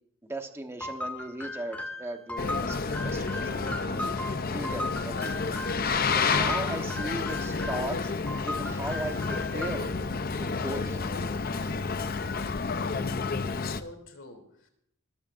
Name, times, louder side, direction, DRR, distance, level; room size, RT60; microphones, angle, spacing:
voice 1, 0.3-4.1 4.5-5.8 6.1-8.1 8.4-9.8 10.4-11.1, right 1 dB, 10° right, 5 dB, 1.1 m, -38 dB
sound 1, 0.8-5.9 6.3-7.9 8.3-10.0, left 2 dB, 5° left, 1.7 m, -37 dB
Boat Water vehicle, 2.4-13.8, left 4 dB, 45° left, 0.6 m, -30 dB
voice 2, 12.8-14.7, left 2 dB, 60° left, 5 dB, 3.1 m, -47 dB
20.5 x 14.0 x 2.6 m, 0.72 s
head